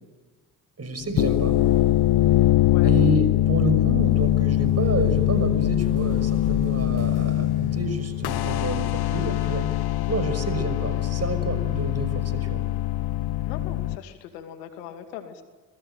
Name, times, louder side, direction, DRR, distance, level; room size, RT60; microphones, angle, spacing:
voice 1, 0.8-1.6 2.8-9.7 10.1-12.6, right 3 dB, 30° right, 9 dB, 6.0 m, -29 dB
sound 1, 1.0-14.0, left 15 dB, 55° left, 1.0 m, -22 dB
voice 2, 13.4-15.4, left 9 dB, 85° left, 7 dB, 2.5 m, -39 dB
26.0 x 21.5 x 9.1 m, 1.3 s
hypercardioid pair, 50°, 46 cm